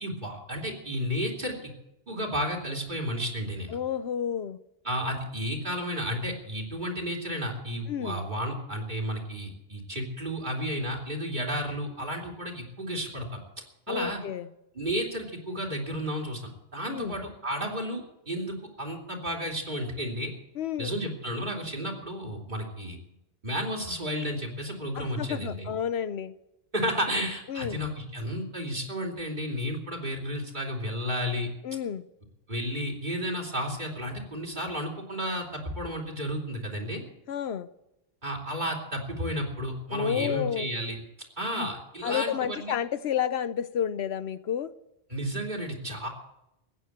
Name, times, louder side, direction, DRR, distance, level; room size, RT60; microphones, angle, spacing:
voice 1, 0.0-1.7 2.1-3.8 4.8-13.4 13.9-14.2 14.7-20.3 20.8-23.0 23.4-25.7 26.7-31.5 32.5-37.0 38.2-41.0 41.4-42.7 45.1-46.1, equal, 50° right, 3.0 m, -32 dB
voice 2, 3.7-4.6 7.9-8.2 13.9-14.5 16.9-17.2 20.6-20.9 25.0-26.3 27.5-27.8 31.6-32.0 37.3-37.7 39.9-40.7 41.6-41.7 42.0-44.7, left 8 dB, 85° left, 1.0 m, -30 dB
16.0 x 9.6 x 8.8 m
omnidirectional pair, 1.1 m